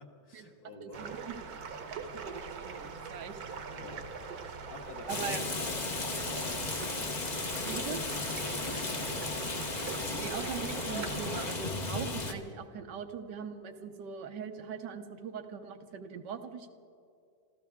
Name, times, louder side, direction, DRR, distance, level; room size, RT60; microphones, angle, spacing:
voice 1, 0.0-1.1 3.7-5.3 5.6-6.6 8.3-9.4, left 2 dB, 55° left, 0 dB, 2.1 m, -49 dB
voice 2, 0.8-1.4 2.0-3.4 5.1-5.5 7.7-8.0 10.2-16.7, right 7 dB, 75° right, 7 dB, 1.5 m, -41 dB
sound 1, 0.9-11.5, right 5 dB, 60° right, 1.4 m, -42 dB
Rain, 5.1-12.3, left 3 dB, 30° left, 0.9 m, -35 dB
26.5 x 14.5 x 3.6 m, 2.4 s
omnidirectional pair, 1.9 m